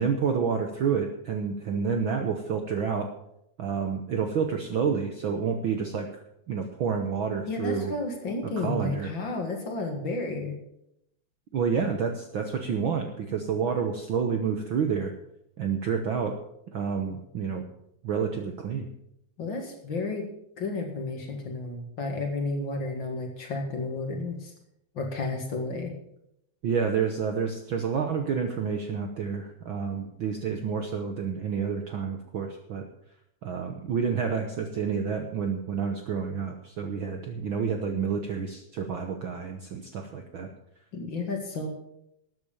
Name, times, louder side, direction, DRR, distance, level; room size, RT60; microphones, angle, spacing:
voice 1, 0.0-3.1 3.6-6.2 6.5-7.9 8.6-9.1 11.5-15.1 15.6-16.4 16.7-17.6 18.0-18.9 26.6-32.8 33.4-40.5, right 6 dB, 60° right, 5 dB, 1.4 m, -29 dB
voice 2, 7.5-10.6 19.4-20.3 20.6-24.5 24.9-25.9 40.9-41.7, left 3 dB, 45° left, 3 dB, 2.5 m, -32 dB
13.0 x 8.9 x 7.2 m, 0.79 s
omnidirectional pair, 3.3 m